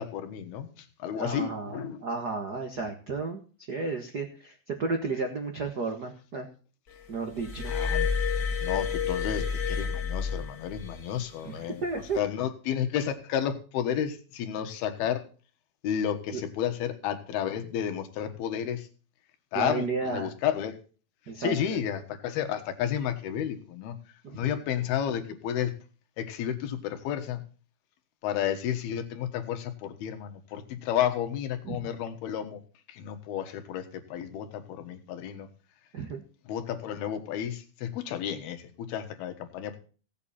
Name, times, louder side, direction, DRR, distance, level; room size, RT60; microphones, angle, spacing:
voice 1, 0.0-2.0 7.7-8.1 8.6-11.8 12.1-15.2 15.8-18.9 19.5-20.8 21.4-24.0 24.3-25.7 26.2-27.4 28.2-32.6 32.9-35.5 36.5-39.8, left 9 dB, 85° left, 8 dB, 3.3 m, -32 dB
voice 2, 1.1-3.4 3.7-6.5 7.1-7.7 11.4-12.2 16.3-16.4 19.5-20.3 21.3-21.8 24.2-24.6 31.6-31.8 35.9-36.2, right 4 dB, 85° right, 4 dB, 0.8 m, -33 dB
Glass, 7.4-11.0 12.0-12.2, left 6 dB, 35° left, 1.5 m, -29 dB
17.0 x 8.2 x 4.2 m, 0.39 s
omnidirectional pair, 4.3 m